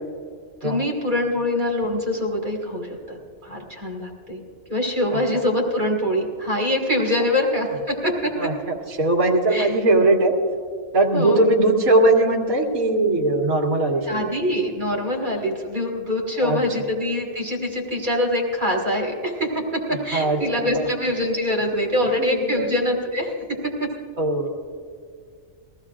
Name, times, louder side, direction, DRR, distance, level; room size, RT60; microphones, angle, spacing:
voice 1, 0.6-4.4 4.7-8.5 9.5-9.7 11.1-11.4 14.1-19.6 19.9-23.3 23.8-23.9, left 1 dB, 35° right, -1 dB, 2.2 m, -24 dB
voice 2, 8.4-10.3 10.9-14.5 16.4-16.6 20.1-20.4 20.8-20.9 22.2-22.6 24.2-24.5, right 2 dB, 90° right, -3 dB, 2.1 m, -20 dB
21.5 x 15.5 x 2.5 m, 2.1 s
omnidirectional pair, 1.4 m